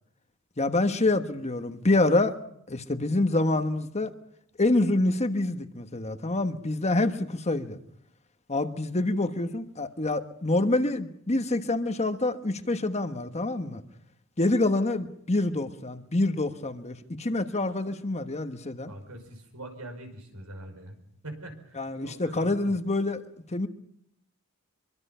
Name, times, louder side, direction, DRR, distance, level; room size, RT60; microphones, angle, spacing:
voice 1, 0.6-2.4 2.7-4.1 4.6-7.8 8.5-13.8 14.4-18.9 21.8-23.2 23.5-23.7, left 2 dB, 30° left, 1.3 m, -26 dB
voice 2, 18.9-21.0 21.2-22.7, right 1 dB, 80° right, 5.4 m, -43 dB
24.5 x 24.0 x 5.7 m
head